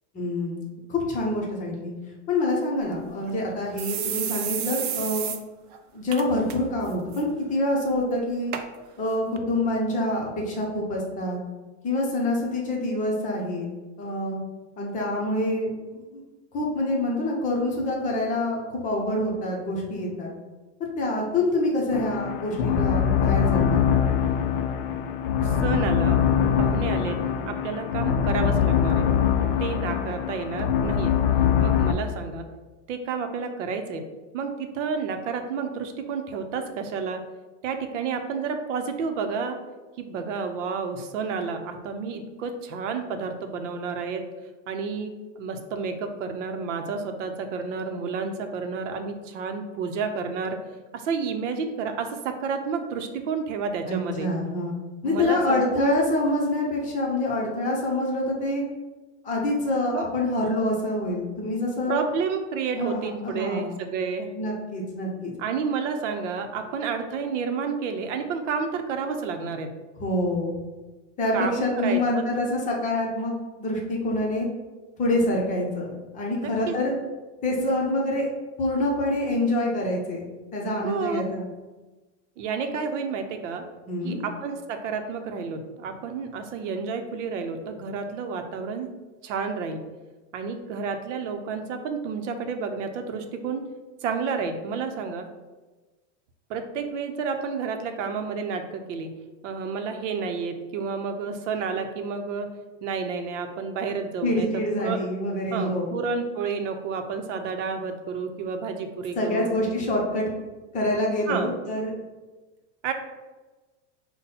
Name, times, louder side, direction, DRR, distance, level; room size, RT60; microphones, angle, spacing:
voice 1, 0.1-0.6 0.9-1.9 2.3-5.3 5.9-8.5 9.0-11.4 11.8-13.7 14.0-14.4 14.8-16.2 16.5-20.3 21.0-23.8 53.9-54.7 55.0-58.6 59.2-62.0 62.7-63.8 64.3-65.3 70.0-70.6 71.2-74.5 75.0-76.9 77.4-78.3 78.6-80.2 80.5-81.5 83.9-84.2 104.2-105.9 109.2-110.2 110.7-111.9, left 1 dB, 20° left, -2 dB, 0.7 m, -26 dB
sound 1, 2.8-2.9 3.3-3.4 3.8-5.4 5.7-5.8 6.1-6.6 6.9-7.2 7.9-8.0 8.5-8.7 9.4-9.5, right 9 dB, 45° right, 0.4 m, -30 dB
sound 2, 21.9-31.9, left 8 dB, 50° left, 0.4 m, -23 dB
voice 2, 25.4-26.2 26.6-27.2 27.5-29.1 29.6-31.2 31.6-32.5 32.9-34.1 34.3-37.2 37.6-39.6 40.0-44.2 44.7-50.6 50.9-54.3 55.0-55.7 59.9-60.1 61.9-64.3 65.4-69.7 71.3-72.2 76.4-76.8 80.8-81.2 82.4-83.7 84.0-88.9 89.2-89.8 90.3-93.6 94.0-95.3 96.5-99.2 99.4-102.5 102.8-105.0 105.5-109.5 111.3-111.5 112.8-112.9, right 5 dB, 85° right, 6 dB, 0.7 m, -30 dB
5.4 x 2.2 x 4.1 m, 1.2 s
supercardioid pair, 160°, 36 cm